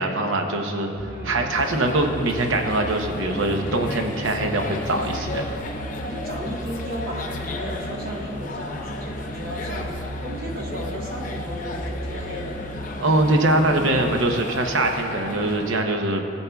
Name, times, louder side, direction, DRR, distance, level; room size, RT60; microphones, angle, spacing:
voice 1, 0.0-0.9 1.2-5.5 13.0-16.2, right 2 dB, 90° right, 4 dB, 0.8 m, -22 dB
voice 2, 0.6-1.5 6.1-12.7, equal, 50° right, -1 dB, 1.2 m, -35 dB
sound 1, 1.0-14.3, equal, 65° left, 1.5 m, -35 dB
sound 2, 1.5-15.8, left 2 dB, 45° left, 0.8 m, -35 dB
17.0 x 7.0 x 2.3 m, 2.5 s
head